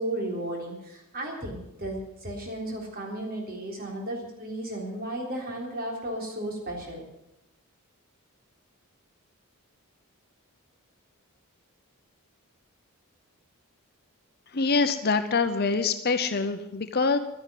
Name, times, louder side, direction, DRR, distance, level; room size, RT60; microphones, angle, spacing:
voice 1, 0.0-7.0, right 1 dB, 45° right, 0 dB, 3.7 m, -34 dB
voice 2, 14.5-17.2, left 4 dB, 45° left, 8 dB, 0.8 m, -25 dB
12.5 x 10.0 x 9.1 m, 0.86 s
head